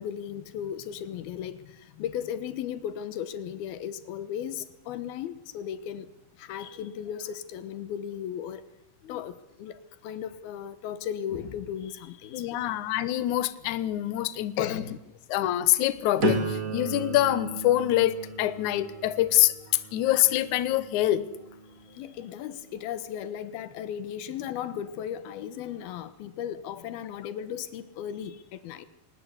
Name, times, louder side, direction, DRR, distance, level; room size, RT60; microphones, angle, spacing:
voice 1, 0.0-6.1 6.4-8.6 9.1-12.8 14.6-15.0 21.9-28.9, left 9 dB, 85° left, 14 dB, 3.0 m, -36 dB
voice 2, 12.3-14.8 15.3-21.2, left 14 dB, 65° left, 14 dB, 2.1 m, -25 dB
sound 1, 16.2-22.1 22.6-23.0, right 2 dB, 60° right, 0.9 m, -35 dB
22.0 x 19.5 x 8.2 m, 0.89 s
omnidirectional pair, 4.3 m